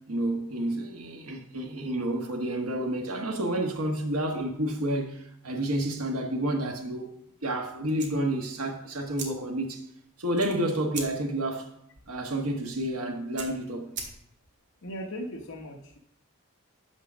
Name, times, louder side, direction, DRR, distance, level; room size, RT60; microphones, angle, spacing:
voice 1, 0.1-7.1 7.4-9.8 10.2-11.7 12.1-13.9, right 1 dB, 80° right, 1.3 m, -30 dB
sound 1, 8.0-14.6, right 4 dB, 55° right, 2.0 m, -43 dB
voice 2, 14.8-16.0, equal, 60° left, 1.0 m, -38 dB
7.3 x 6.6 x 6.1 m
head